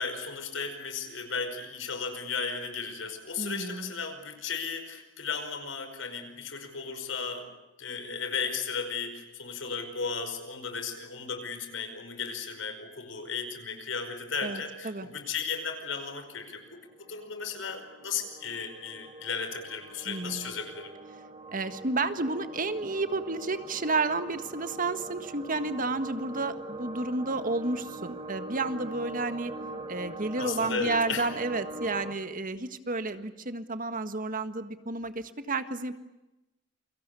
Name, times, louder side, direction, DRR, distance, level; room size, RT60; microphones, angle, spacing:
voice 1, 0.0-7.5 7.8-20.9 30.4-31.3, left 5 dB, 85° left, 7 dB, 5.3 m, -35 dB
voice 2, 3.4-3.9 14.4-15.1 20.1-20.5 21.5-29.5 29.9-35.9, right 3 dB, 45° right, 10 dB, 1.6 m, -31 dB
sound 1, 15.5-32.1, right 2 dB, 30° right, 2.2 m, -42 dB
29.0 x 24.0 x 7.0 m, 0.97 s
head